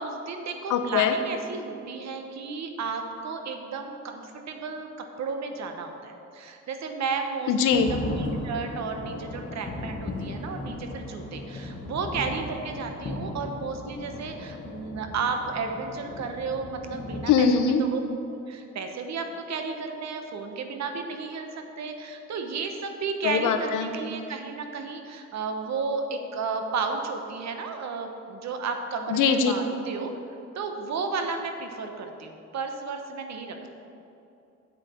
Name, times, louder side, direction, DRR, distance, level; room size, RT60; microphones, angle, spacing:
voice 1, 0.0-4.9 5.2-17.5 17.8-18.0 18.3-21.5 21.8-30.1 30.5-33.7, right 4 dB, 65° right, 5 dB, 1.1 m, -33 dB
voice 2, 0.7-1.1 7.5-7.9 17.3-17.8 23.2-23.9 29.1-29.5, left 6 dB, 90° left, 7 dB, 0.8 m, -22 dB
sound 1, 7.7-17.4, left 2 dB, 40° left, 1.3 m, -37 dB
8.5 x 7.7 x 4.4 m, 2.7 s
cardioid pair, 90°, 30 cm